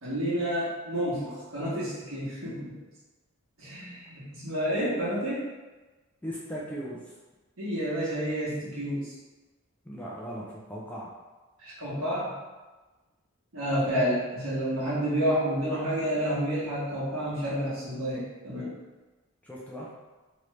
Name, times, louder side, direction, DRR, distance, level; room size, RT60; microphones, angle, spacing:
voice 1, 0.0-2.8 3.6-5.5 7.6-9.1 11.6-12.3 13.5-18.7, equal, 70° right, -8 dB, 1.3 m, -29 dB
voice 2, 6.2-7.0 9.9-11.1 19.4-19.9, equal, 5° left, -5 dB, 0.4 m, -38 dB
3.0 x 2.5 x 3.1 m, 1.2 s
head